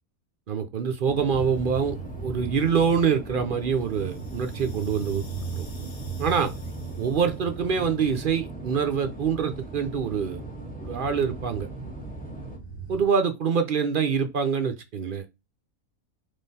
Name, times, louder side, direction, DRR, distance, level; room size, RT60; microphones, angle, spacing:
voice 1, 0.5-2.0 2.2-5.7 6.2-6.5 7.0-10.4 10.8-11.7 12.9-15.3, right 6 dB, 55° right, 0.6 m, -25 dB
sound 1, 1.0-12.6, right 2 dB, 5° left, 1.3 m, -40 dB
sound 2, 1.3-13.0, right 4 dB, 70° left, 1.6 m, -40 dB
3.7 x 3.1 x 4.1 m
omnidirectional pair, 1.5 m